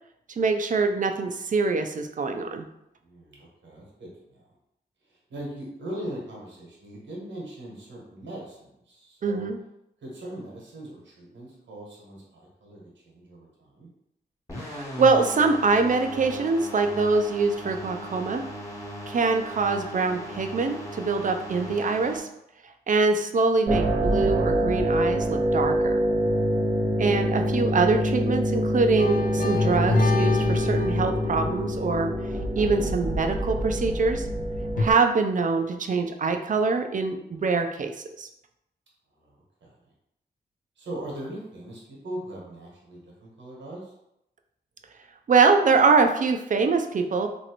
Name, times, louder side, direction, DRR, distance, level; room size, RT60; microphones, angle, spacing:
voice 1, 0.4-2.7 9.2-9.6 14.6-18.4 19.1-22.3 22.9-26.0 27.0-32.1 32.6-34.3 34.8-38.3 45.3-47.3, right 4 dB, 45° right, 6 dB, 0.4 m, -24 dB
voice 2, 3.0-4.4 5.3-9.5 10.0-13.9 26.3-26.6 39.2-39.7 40.8-43.9, right 1 dB, 85° right, -3 dB, 1.1 m, -40 dB
sound 1, 14.5-22.2, equal, 20° left, 1.1 m, -38 dB
sound 2, 23.7-34.9, equal, 15° right, 0.9 m, -26 dB
sound 3, 29.0-33.9 34.8-34.9, left 2 dB, 50° left, 0.5 m, -27 dB
3.0 x 2.6 x 2.9 m, 0.81 s
cardioid pair, 50°, 19 cm